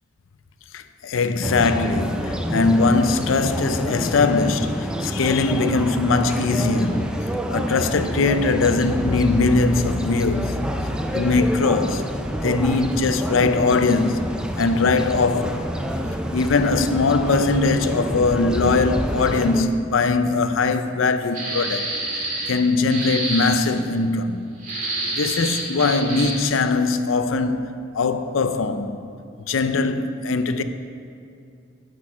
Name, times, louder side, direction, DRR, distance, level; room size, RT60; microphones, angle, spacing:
voice 1, 0.7-7.1 7.5-12.0 12.4-15.7 16.3-21.9 22.5-24.4 25.1-27.7 27.9-29.0 29.5-30.6, left 3 dB, 75° left, 0.5 m, -21 dB
sound 1, 1.4-19.6, equal, 5° right, 0.5 m, -28 dB
sound 2, 21.3-22.6 22.9-23.5 24.6-26.5, right 2 dB, 45° right, 1.9 m, -27 dB
11.5 x 6.5 x 4.9 m
head